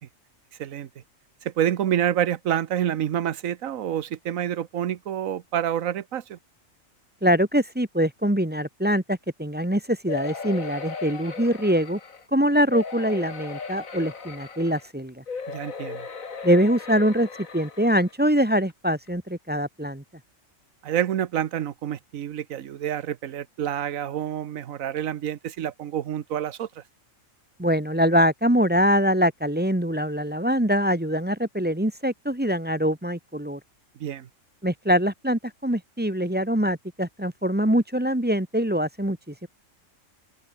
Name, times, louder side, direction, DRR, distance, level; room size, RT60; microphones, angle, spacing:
voice 1, 1.4-6.4 15.5-16.1 20.8-26.8 34.0-34.3, right 10 dB, 85° right, 1.3 m, -28 dB
voice 2, 7.2-12.0 12.3-15.2 16.4-17.3 17.5-20.0 27.6-33.6 34.6-39.5, equal, 5° right, 1.8 m, -23 dB
sound 1, 10.1-12.2 12.7-14.9 15.3-18.1 18.7-18.8 19.1-19.2, left 5 dB, 85° left, 2.5 m, -37 dB
open air
omnidirectional pair, 1.4 m